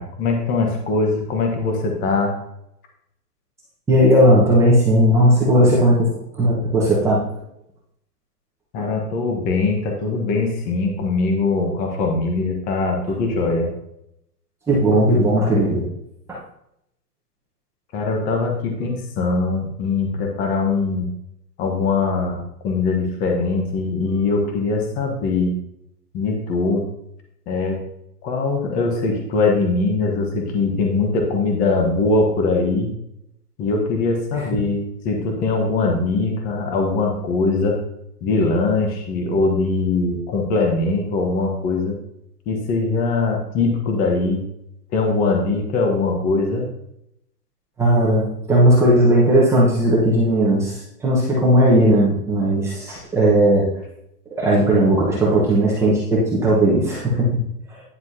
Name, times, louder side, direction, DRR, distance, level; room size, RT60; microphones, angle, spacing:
voice 1, 0.0-2.4 8.7-13.7 17.9-21.1 21.6-25.5 26.1-26.9 27.5-27.8 28.2-32.9 33.6-37.7 38.2-41.9 42.5-44.4 44.9-46.7, left 3 dB, 15° left, 2 dB, 1.1 m, -21 dB
voice 2, 3.9-7.2 8.8-8.9 14.7-15.8 16.3-16.4 34.3-34.4 47.8-53.6 54.3-57.3, right 1 dB, 5° right, -6 dB, 1.1 m, -16 dB
10.0 x 7.0 x 2.8 m, 0.78 s
hypercardioid pair, 155°, 49 cm